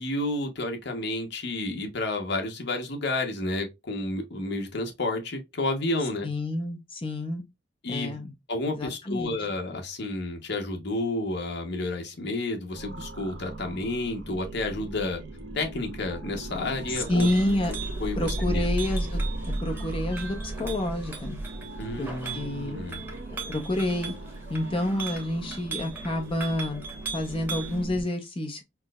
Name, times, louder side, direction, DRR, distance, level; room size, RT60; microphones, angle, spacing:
voice 1, 0.0-6.3 7.8-8.2 8.5-15.2 15.5-17.3 18.0-18.7 21.8-23.0, left 2 dB, 65° left, 0.9 m, -31 dB
voice 2, 6.2-7.4 7.9-8.3 8.7-9.4 16.9-17.7 18.2-19.2 19.5-21.4 22.0-22.8 23.6-24.1 24.5-26.8 27.1-28.6, left 1 dB, 30° left, 0.6 m, -29 dB
sound 1, 12.7-28.0, right 1 dB, 80° right, 0.8 m, -36 dB
Chink clink, 16.5-27.8, right 5 dB, 10° right, 0.9 m, -40 dB
4.5 x 2.0 x 2.3 m
head